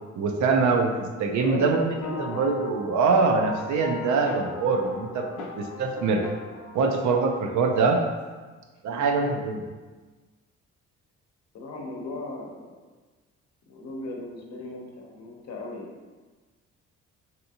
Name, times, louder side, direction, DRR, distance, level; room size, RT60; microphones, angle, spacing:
voice 1, 0.2-1.9 2.2-6.2 6.7-8.0 8.8-9.6, right 4 dB, 70° right, 3 dB, 0.5 m, -24 dB
voice 2, 1.2-2.4 9.1-9.3 11.5-12.8 13.7-16.0, left 2 dB, 60° left, -1 dB, 0.8 m, -37 dB
sound 1, 2.0-7.1, left 4 dB, 85° left, 0.6 m, -38 dB
3.4 x 2.8 x 2.8 m, 1.3 s
cardioid pair, 90°, 30 cm